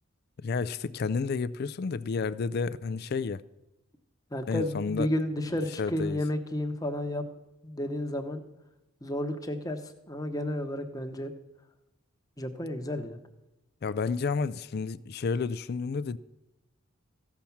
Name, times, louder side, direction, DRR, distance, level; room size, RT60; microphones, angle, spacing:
voice 1, 0.4-3.4 4.5-5.1 5.8-6.2 13.8-16.2, left 5 dB, 50° left, 0.4 m, -31 dB
voice 2, 4.3-7.2 7.6-8.4 9.0-9.8 10.1-11.3 12.4-13.2, left 1 dB, 15° left, 0.9 m, -31 dB
14.5 x 5.9 x 7.0 m
head